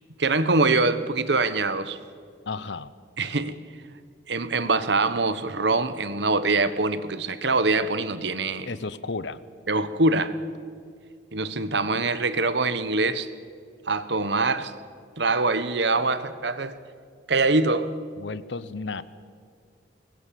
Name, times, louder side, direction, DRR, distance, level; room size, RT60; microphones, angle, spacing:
voice 1, 0.2-2.0 3.2-3.6 4.3-8.7 9.7-10.4 11.3-13.3 13.8-14.7 15.2-16.7 17.3-17.9, right 3 dB, 65° right, 1.2 m, -24 dB
voice 2, 2.5-2.9 8.7-9.4 18.2-19.0, left 3 dB, 70° left, 0.9 m, -33 dB
23.5 x 20.0 x 7.5 m
head